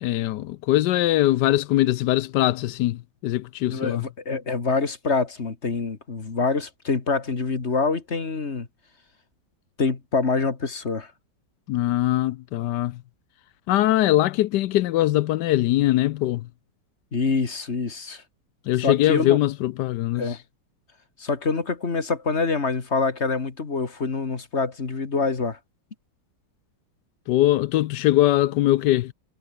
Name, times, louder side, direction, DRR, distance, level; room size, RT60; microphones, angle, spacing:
voice 1, 0.0-4.0 11.7-13.0 13.7-16.5 18.7-20.2 27.3-29.1, left 15 dB, 75° left, 1.2 m, -22 dB
voice 2, 3.7-8.7 9.8-11.1 17.1-18.2 18.8-19.4 20.2-20.4 21.2-25.6, left 4 dB, 40° left, 2.2 m, -25 dB
omnidirectional pair, 1.9 m